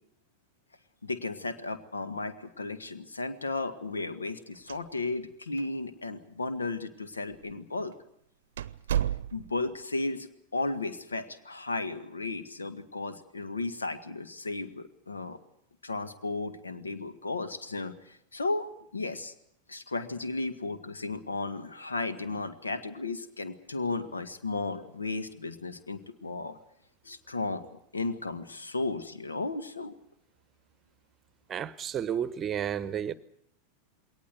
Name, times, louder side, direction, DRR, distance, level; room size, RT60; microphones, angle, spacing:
voice 1, 1.0-7.9 9.3-15.4 15.8-18.7 18.9-19.3 19.7-26.6 27.0-27.7 27.9-29.9, left 3 dB, 75° left, 1.6 m, -34 dB
sound 1, 4.5-5.3 5.6-5.7 6.4-6.5 7.3-7.5 7.9-8.0 8.6-9.7, right 10 dB, 60° right, 0.8 m, -32 dB
voice 2, 31.5-33.1, right 9 dB, 25° right, 0.9 m, -32 dB
21.5 x 18.5 x 8.1 m
figure-of-eight pair, 90°, 0 cm